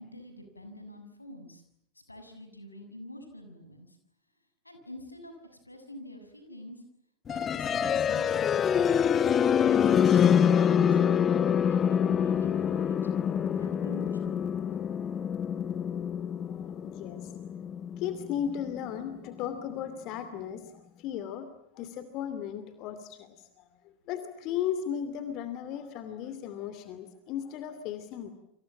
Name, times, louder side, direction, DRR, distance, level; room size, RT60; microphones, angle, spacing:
voice 1, 0.0-1.6 1.9-4.0 4.6-6.8 7.3-8.7 9.5-11.0 11.7-13.1 13.6-14.6, left 1 dB, 85° left, 7 dB, 6.9 m, -47 dB
sound 1, 7.3-19.2, left 8 dB, 25° left, 1.1 m, -26 dB
voice 2, 16.5-17.4 18.0-28.3, left 9 dB, 40° left, 11 dB, 2.7 m, -36 dB
29.5 x 26.5 x 7.5 m, 0.77 s
figure-of-eight pair, 90°, 0 cm